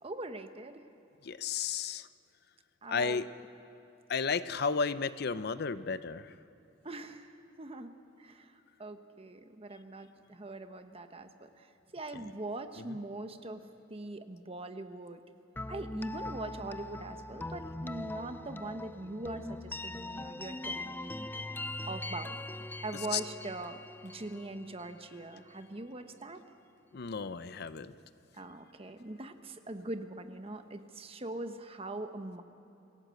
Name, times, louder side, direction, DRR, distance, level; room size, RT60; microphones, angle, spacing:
voice 1, 0.0-0.9 2.8-3.2 6.8-7.9 8.2-8.5 8.8-11.7 11.9-13.6 13.9-15.2 15.7-21.2 21.9-22.4 22.8-26.4 28.4-32.4, right 2 dB, 30° right, 8 dB, 1.1 m, -42 dB
voice 2, 1.2-2.1 2.9-3.3 4.1-6.3 23.1-23.2 26.9-27.9, left 5 dB, 55° left, 14 dB, 0.6 m, -33 dB
sound 1, 15.6-25.3, left 2 dB, 10° left, 0.4 m, -41 dB
26.5 x 17.0 x 7.7 m, 3.0 s
head